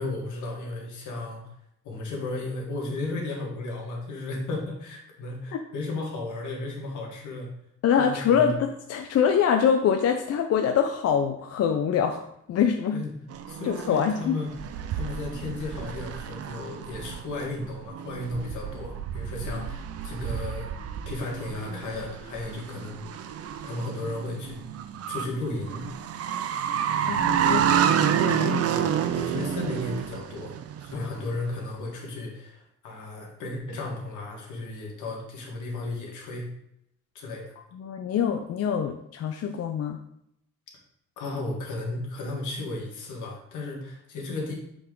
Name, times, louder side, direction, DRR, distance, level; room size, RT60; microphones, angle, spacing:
voice 1, 0.0-1.4 1.8-7.5 8.0-8.5 12.9-13.1 13.5-14.5 14.9-20.7 21.0-24.6 25.1-25.8 27.4-27.6 28.7-30.5 30.8-36.4 37.1-37.6 41.2-44.5, left 2 dB, 80° left, -1 dB, 1.7 m, -34 dB
voice 2, 7.8-12.2 12.5-13.0 13.6-14.4 27.0-27.6 28.2-28.7 30.9-31.1 37.7-40.0, left 7 dB, 55° left, 5 dB, 0.5 m, -24 dB
sound 1, 13.3-31.3, right 8 dB, 55° right, 0.5 m, -29 dB
7.0 x 3.6 x 3.8 m, 0.76 s
cardioid pair, 90°, 30 cm